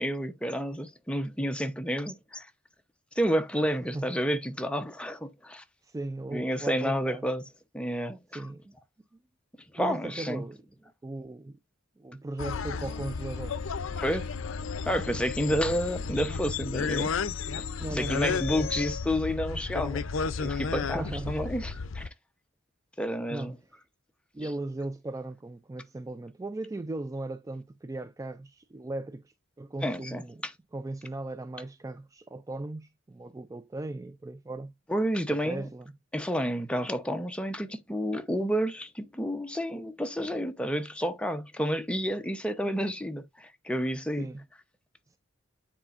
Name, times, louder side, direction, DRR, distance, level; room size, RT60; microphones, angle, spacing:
voice 1, 0.0-2.5 3.2-5.6 6.3-7.4 7.7-8.5 9.7-10.4 14.0-14.3 14.9-17.1 17.5-17.6 17.9-20.0 20.4-22.1 23.0-23.6 29.8-30.5 34.9-35.7 36.1-44.3, equal, 5° left, 0.8 m, -30 dB
voice 2, 5.8-7.3 8.3-8.7 9.1-9.2 9.8-10.6 11.0-11.6 12.0-13.6 15.1-15.6 17.8-18.7 20.8-21.4 23.3-23.5 24.3-30.4 30.7-34.7 35.3-35.9 44.2-44.4, right 2 dB, 15° right, 0.3 m, -37 dB
sound 1, 12.4-22.1, left 5 dB, 70° left, 0.5 m, -33 dB
9.7 x 4.2 x 2.5 m
head